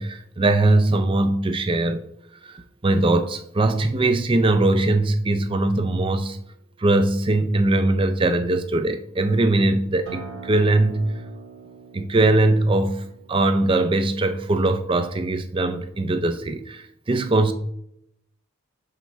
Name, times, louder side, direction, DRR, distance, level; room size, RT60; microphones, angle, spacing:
voice 1, 0.0-2.0 2.4-6.4 6.8-11.2 11.9-17.5, right 2 dB, 25° right, 10 dB, 0.4 m, -21 dB
Acoustic guitar, 10.1-15.3, right 4 dB, 50° right, 1.6 m, -44 dB
6.4 x 5.7 x 3.1 m, 0.74 s
head